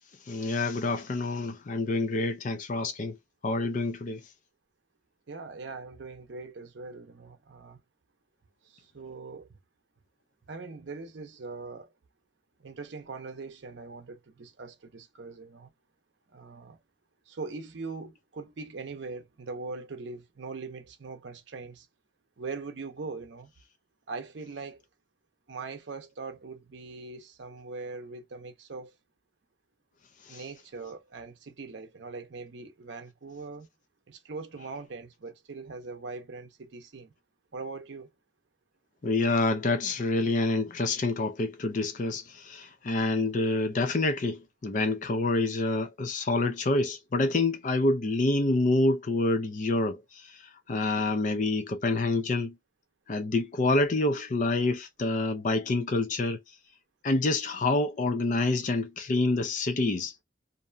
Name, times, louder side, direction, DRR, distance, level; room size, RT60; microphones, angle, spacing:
voice 1, 0.3-3.2 3.4-4.3 30.3-30.4 39.0-52.6 53.1-56.4 57.0-60.1, left 2 dB, 40° left, 0.4 m, -27 dB
voice 2, 5.3-7.8 8.7-9.5 10.5-11.9 12.6-15.7 16.3-16.8 17.3-21.9 22.4-23.5 24.1-24.8 25.5-28.9 30.3-33.7 34.1-37.1 37.5-38.1, right 4 dB, 65° right, 0.6 m, -41 dB
2.6 x 2.1 x 2.5 m
head